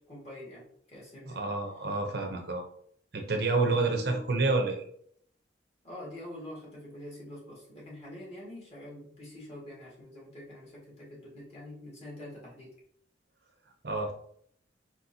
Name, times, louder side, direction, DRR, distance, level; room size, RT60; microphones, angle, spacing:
voice 1, 0.0-1.4 3.6-4.2 5.8-12.7, left 1 dB, 35° left, -5 dB, 1.8 m, -45 dB
voice 2, 1.3-2.6 3.1-4.8 13.8-14.1, right 3 dB, 60° right, 4 dB, 0.7 m, -28 dB
4.3 x 4.2 x 2.8 m, 0.66 s
head